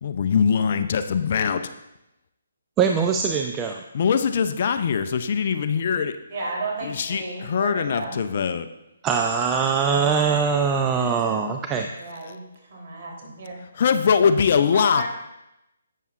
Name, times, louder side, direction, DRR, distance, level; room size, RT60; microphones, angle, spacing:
voice 1, 0.0-1.6 3.9-6.1 6.8-8.7 13.7-15.0, left 6 dB, 50° left, 10 dB, 0.5 m, -22 dB
voice 2, 2.8-3.8 9.0-11.9, right 6 dB, 15° right, 4 dB, 0.4 m, -22 dB
voice 3, 6.3-8.1 11.9-12.4 12.7-13.6 14.7-15.0, right 2 dB, 45° right, -2 dB, 3.4 m, -33 dB
12.0 x 8.3 x 2.5 m, 0.90 s
figure-of-eight pair, 150°, 0 cm